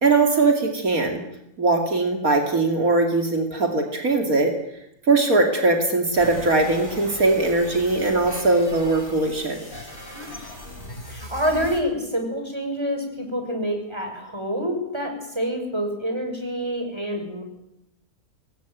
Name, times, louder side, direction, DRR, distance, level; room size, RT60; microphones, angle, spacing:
voice 1, 0.0-1.2 1.6-4.6 5.1-9.6, right 3 dB, 70° right, 4 dB, 3.1 m, -20 dB
sound 1, 6.1-11.8, left 1 dB, 35° left, 5.7 m, -39 dB
voice 2, 11.1-17.4, equal, 15° right, 4 dB, 6.7 m, -27 dB
25.5 x 21.0 x 9.4 m, 0.82 s
omnidirectional pair, 1.5 m